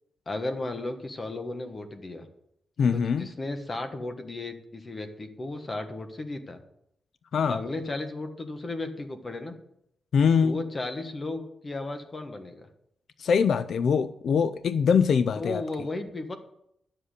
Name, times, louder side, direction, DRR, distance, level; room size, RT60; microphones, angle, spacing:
voice 1, 0.3-2.3 2.9-6.6 7.5-9.5 10.4-12.7 15.4-16.4, left 2 dB, 30° left, 7 dB, 1.3 m, -34 dB
voice 2, 2.8-3.3 7.3-7.6 10.1-10.6 13.2-15.6, left 6 dB, 65° left, 13 dB, 0.4 m, -23 dB
11.0 x 7.5 x 6.5 m, 0.75 s
wide cardioid pair, 140°, 0 cm